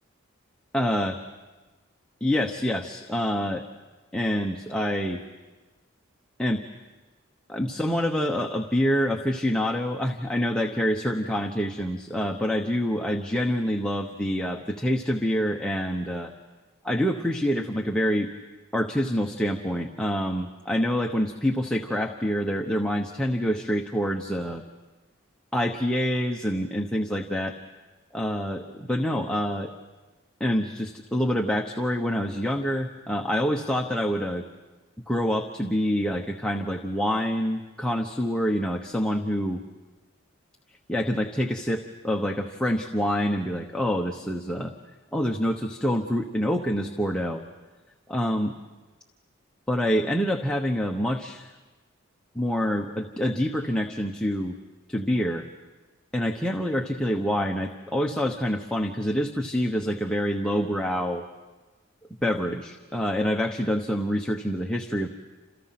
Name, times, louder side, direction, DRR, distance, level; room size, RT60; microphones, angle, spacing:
voice 1, 0.7-1.2 2.2-3.6 4.1-5.2 6.4-6.6 7.5-16.3 16.8-18.3 18.7-24.6 25.5-27.5 28.1-29.7 30.4-34.4 35.1-39.6 40.9-44.7 45.1-47.4 48.1-48.5 49.7-51.5 52.3-54.6 54.9-55.4 56.1-61.2 62.2-65.1, equal, 5° left, 2 dB, 1.0 m, -26 dB
29.5 x 27.5 x 5.9 m, 1.2 s
head